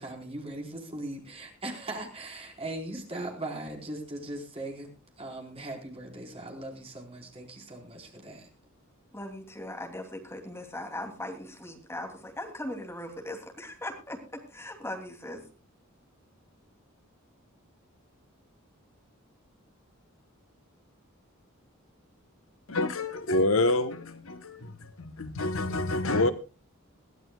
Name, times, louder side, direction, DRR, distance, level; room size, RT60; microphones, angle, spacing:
voice 1, 0.0-4.9 5.2-8.5, right 1 dB, 30° right, 4.4 m, -39 dB
voice 2, 9.1-15.4, left 1 dB, 10° left, 2.8 m, -39 dB
voice 3, 22.7-24.7 25.0-26.3, left 2 dB, 70° left, 1.1 m, -27 dB
22.0 x 14.5 x 2.3 m
head